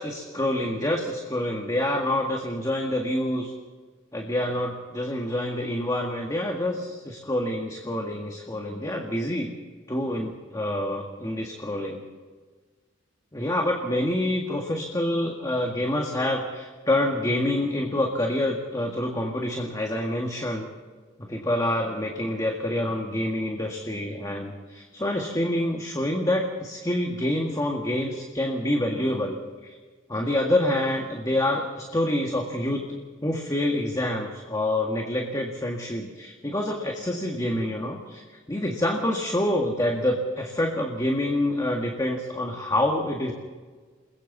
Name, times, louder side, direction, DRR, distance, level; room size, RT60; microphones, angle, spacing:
voice 1, 0.0-3.5 4.1-9.5 9.9-12.0 13.3-20.7 21.2-29.4 29.6-29.8 30.1-33.0 33.2-38.2 38.5-43.3, left 1 dB, 20° left, 1 dB, 1.9 m, -27 dB
29.5 x 21.0 x 4.1 m, 1.4 s
head